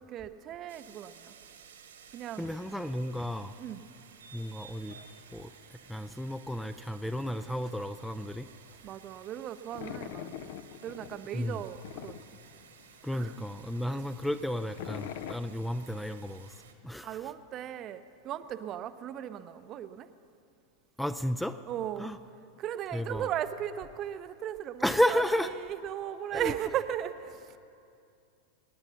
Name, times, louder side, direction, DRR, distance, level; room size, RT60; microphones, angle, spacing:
voice 1, 0.0-1.3 2.1-2.5 3.6-3.8 8.8-10.5 10.8-12.2 13.1-13.5 13.9-14.0 17.0-20.1 21.7-22.1 22.6-25.2 25.5-27.6, right 10 dB, 35° right, 12 dB, 0.7 m, -37 dB
sound 1, 0.7-16.7, right 7 dB, 65° right, 1.5 m, -55 dB
voice 2, 2.4-3.5 4.3-5.0 5.3-5.5 5.9-8.5 11.3-11.6 13.0-17.3 21.0-21.6 22.0-22.2 22.9-23.3 24.8-25.5 26.3-26.5, equal, 5° left, 11 dB, 0.4 m, -32 dB
sound 2, 9.7-13.0 13.3-13.4 13.6-13.7 14.1-15.3, left 10 dB, 50° left, 0.6 m, -42 dB
26.0 x 9.8 x 5.7 m, 2.5 s
figure-of-eight pair, 90°, 0 cm